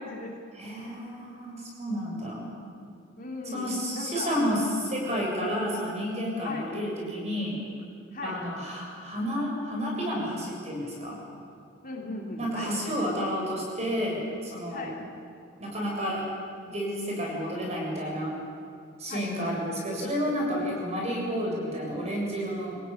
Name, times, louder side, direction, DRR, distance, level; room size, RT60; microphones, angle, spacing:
voice 1, 0.0-0.3 3.2-4.6 6.4-6.7 8.1-8.4 11.8-12.7 14.7-15.0 19.1-19.3, left 2 dB, 40° left, -1 dB, 3.2 m, -37 dB
voice 2, 0.5-2.5 3.5-7.6 8.2-11.2 12.4-14.9 15.6-16.2 16.7-18.3 19.0-22.8, equal, 30° right, -2 dB, 7.5 m, -31 dB
27.0 x 17.5 x 9.8 m, 2.4 s
head